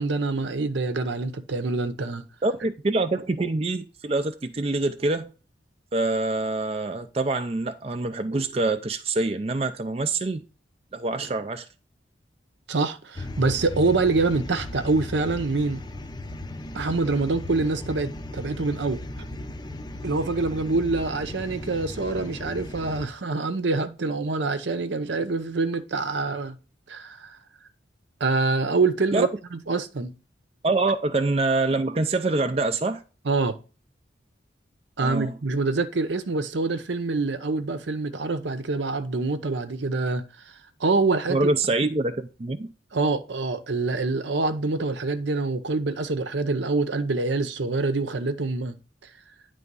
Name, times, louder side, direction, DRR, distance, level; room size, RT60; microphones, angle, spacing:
voice 1, 0.0-2.3 12.7-15.8 16.7-19.0 20.0-26.6 26.9-27.4 28.2-30.1 33.3-33.6 35.0-40.5 40.8-41.5 41.8-41.9 42.9-48.7, right 3 dB, 75° right, 0.8 m, -26 dB
voice 2, 2.4-5.3 5.9-10.4 10.9-11.7 29.1-29.3 30.6-33.0 35.0-35.4 41.3-42.7, right 2 dB, 30° right, 0.5 m, -25 dB
sound 1, 13.1-23.1, left 1 dB, 25° left, 0.6 m, -37 dB
9.7 x 3.5 x 5.3 m
head